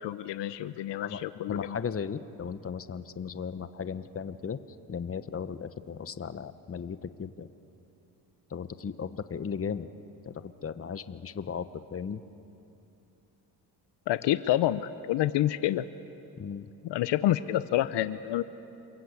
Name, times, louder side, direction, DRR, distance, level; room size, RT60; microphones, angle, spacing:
voice 1, 0.0-1.8 14.1-15.8 16.8-18.4, left 13 dB, 70° left, 14 dB, 0.8 m, -28 dB
voice 2, 1.5-4.6 4.9-7.5 8.5-9.9 10.3-12.2 16.4-16.7, left 6 dB, 30° left, 12 dB, 1.1 m, -36 dB
28.5 x 21.5 x 8.4 m, 2.9 s
cardioid pair, 80°, 43 cm